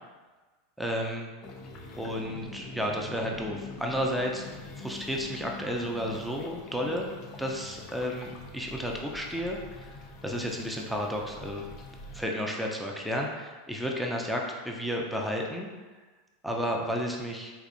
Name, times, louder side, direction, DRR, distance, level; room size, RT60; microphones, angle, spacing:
voice 1, 0.8-1.3 1.9-9.9 10.2-11.6 12.1-15.7 16.4-17.5, equal, ahead, -1 dB, 0.5 m, -32 dB
sound 1, 1.4-12.2, left 2 dB, 50° left, 0.4 m, -44 dB
4.2 x 2.6 x 2.6 m, 1.3 s
hypercardioid pair, 95°, 0 cm